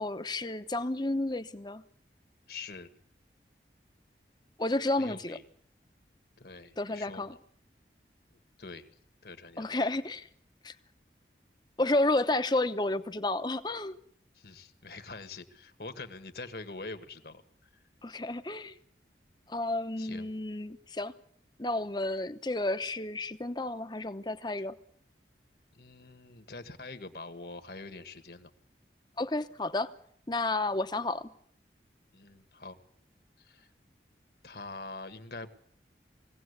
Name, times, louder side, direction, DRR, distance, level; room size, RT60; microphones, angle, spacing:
voice 1, 0.0-1.8 4.6-5.4 6.8-7.4 9.6-10.3 10.6-10.7 11.8-14.0 18.0-18.7 19.5-21.1 21.6-24.8 29.2-29.9 30.3-31.3, left 2 dB, 25° left, 10 dB, 0.9 m, -31 dB
voice 2, 2.5-2.9 5.0-5.4 6.4-7.4 8.6-8.9 9.2-9.7 14.3-17.7 20.0-20.3 24.6-24.7 25.7-28.5 32.1-32.8 33.4-33.7 34.4-35.6, left 3 dB, 60° left, 9 dB, 1.6 m, -44 dB
21.5 x 17.0 x 8.1 m, 0.65 s
head